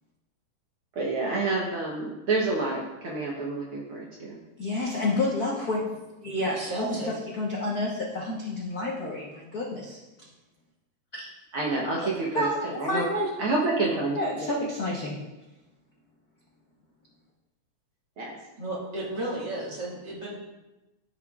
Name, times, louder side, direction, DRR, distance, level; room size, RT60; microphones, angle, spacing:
voice 1, 1.0-4.4 11.5-13.0 13.4-14.2 18.2-18.4, right 3 dB, 60° right, -3 dB, 1.5 m, -28 dB
voice 2, 4.6-5.8 6.2-10.0 11.1-11.3 12.0-13.3 14.1-15.2, left 2 dB, 75° left, -4 dB, 0.8 m, -29 dB
voice 3, 6.4-7.1 18.6-20.4, right 1 dB, 40° right, -5 dB, 2.1 m, -33 dB
14.5 x 5.7 x 2.4 m, 1.0 s
omnidirectional pair, 3.4 m